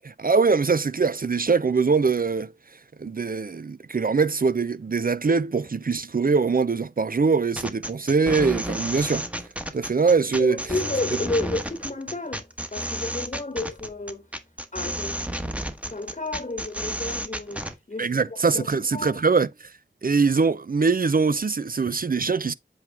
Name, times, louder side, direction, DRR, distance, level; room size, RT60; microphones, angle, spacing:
voice 1, 0.0-2.5 3.0-9.3 9.7-10.6 18.0-19.7 20.0-22.5, right 4 dB, 50° right, 0.5 m, -22 dB
sound 1, 7.6-17.7, equal, 5° right, 1.2 m, -31 dB
voice 2, 10.4-14.2 14.7-15.3 15.9-18.1 18.5-18.7 18.9-19.2, left 2 dB, 40° left, 1.1 m, -31 dB
8.0 x 4.5 x 3.4 m
wide cardioid pair, 60°, 19 cm